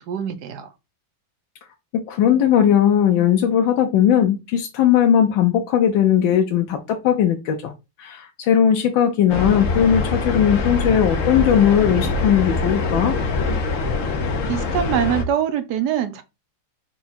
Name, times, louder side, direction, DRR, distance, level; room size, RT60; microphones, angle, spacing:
voice 1, 0.1-0.7 14.5-16.2, right 9 dB, 70° right, 1.1 m, -23 dB
voice 2, 1.9-7.7 8.0-13.2, left 9 dB, 80° left, 1.4 m, -18 dB
sound 1, 9.3-15.2, left 3 dB, 55° left, 0.9 m, -23 dB
4.7 x 2.3 x 4.1 m
omnidirectional pair, 2.1 m